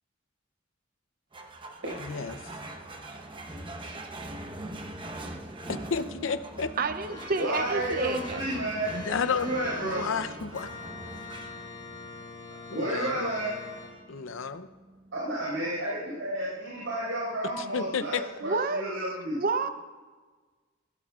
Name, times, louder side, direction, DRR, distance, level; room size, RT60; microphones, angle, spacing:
sound 1, 1.3-18.1, right 1 dB, 25° right, 1.0 m, -44 dB
voice 1, 2.0-2.6 5.7-6.7 8.9-10.7 12.7-13.2 14.1-14.7 17.6-18.2, left 5 dB, 90° left, 12 dB, 0.7 m, -32 dB
voice 2, 6.8-8.4 15.5-15.6 18.4-18.8 19.4-19.7, right 4 dB, 50° right, 9 dB, 0.6 m, -29 dB
Organ, 7.1-13.9, left 3 dB, 35° left, 4.5 m, -43 dB
voice 3, 7.4-9.0 9.3-10.1 12.7-13.6 15.1-19.4, right 1 dB, 85° right, -6 dB, 5.1 m, -31 dB
20.0 x 15.5 x 2.4 m, 1.4 s
head